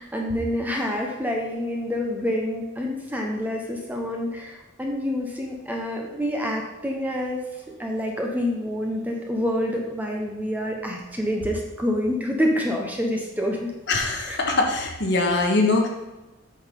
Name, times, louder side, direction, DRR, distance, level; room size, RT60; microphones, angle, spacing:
voice 1, 0.0-7.4 7.8-13.7 14.3-14.4, left 1 dB, 10° right, 0 dB, 1.1 m, -27 dB
voice 2, 13.9-15.9, left 3 dB, 55° left, 2 dB, 1.5 m, -22 dB
8.2 x 6.4 x 5.4 m, 1.1 s
head